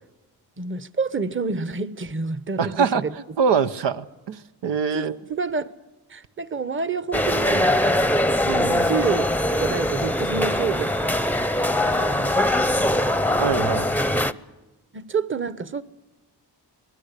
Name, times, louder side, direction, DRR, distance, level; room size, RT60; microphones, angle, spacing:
voice 1, 0.6-3.1 4.9-5.7 6.1-8.2 8.8-13.5 14.9-15.8, right 5 dB, 30° right, 0.9 m, -29 dB
voice 2, 2.6-5.2 8.4-8.9 13.4-13.9, right 6 dB, 90° right, 0.9 m, -24 dB
sound 1, 7.1-14.3, left 1 dB, 5° left, 0.7 m, -22 dB
25.5 x 19.5 x 8.3 m
cardioid pair, 80°, 41 cm